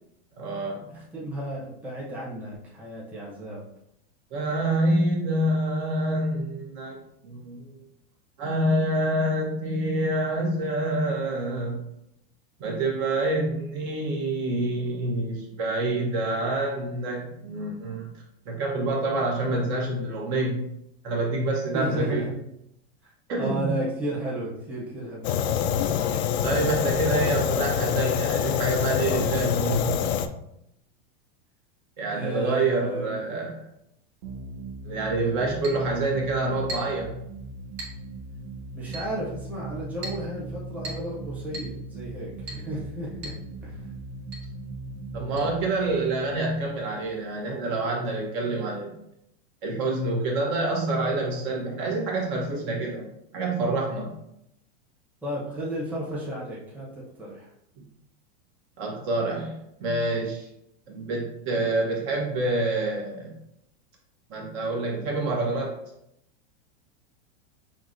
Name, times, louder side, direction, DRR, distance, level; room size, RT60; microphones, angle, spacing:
voice 1, 0.4-1.0 4.3-7.0 7.2-7.8 8.4-11.8 12.6-18.1 18.4-20.6 21.0-22.3 23.3-23.7 26.4-30.0 32.0-33.6 34.8-37.1 45.1-48.9 49.6-54.1 57.8-57.9 58.8-60.5 60.9-63.3 64.3-65.8, right 2 dB, 40° right, -1 dB, 1.0 m, -27 dB
voice 2, 0.9-3.7 21.7-22.4 23.3-25.4 32.1-33.2 38.7-43.3 43.6-43.8 55.2-56.9 57.2-57.5, right 1 dB, 5° right, -7 dB, 1.0 m, -33 dB
Fire, 25.2-30.3, left 8 dB, 75° left, 0.5 m, -25 dB
sound 1, 34.2-47.5, right 2 dB, 60° right, 0.8 m, -39 dB
Chink clink, 35.6-35.9 36.7-37.0 37.8-38.0 38.9-39.1 40.0-40.3 40.8-41.1 41.5-41.8 42.5-42.7 43.2-43.4 43.7-43.8 44.3-44.5 45.4-45.5, right 1 dB, 80° right, 1.5 m, -38 dB
5.9 x 2.8 x 2.6 m, 0.79 s
supercardioid pair, 155°, 32 cm